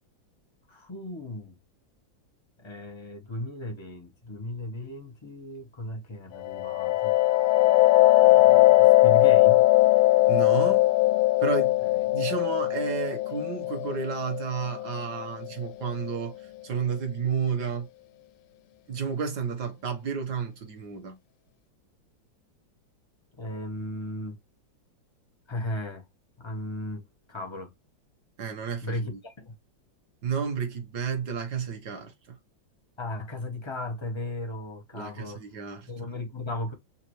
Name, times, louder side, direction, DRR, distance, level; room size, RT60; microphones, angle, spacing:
voice 1, 0.7-1.6 2.6-7.2 8.2-9.7 11.8-12.1 23.4-24.4 25.5-26.0 26.4-27.0 27.3-27.7 28.8-29.5 33.0-35.4 35.9-36.7, left 1 dB, 25° left, 0.6 m, -36 dB
sound 1, 6.4-15.9, left 18 dB, 80° left, 1.3 m, -20 dB
voice 2, 10.3-10.9 11.4-11.8 12.1-16.4 16.6-17.9 18.9-21.2 28.4-29.2 30.2-32.4 34.9-35.9, right 6 dB, 60° right, 1.6 m, -31 dB
5.8 x 2.6 x 3.1 m
omnidirectional pair, 2.1 m